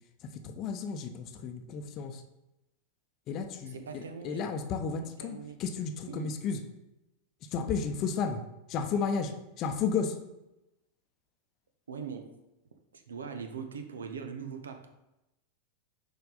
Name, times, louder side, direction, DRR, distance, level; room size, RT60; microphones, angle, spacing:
voice 1, 0.2-2.2 3.3-6.6 7.5-8.4 8.7-10.2, left 5 dB, 35° left, 7 dB, 0.8 m, -33 dB
voice 2, 3.7-4.5 5.2-5.6 6.1-6.3 11.9-12.3 12.9-14.9, right 6 dB, 70° right, 6 dB, 0.9 m, -41 dB
6.7 x 5.2 x 4.0 m, 0.93 s
figure-of-eight pair, 90°, 0 cm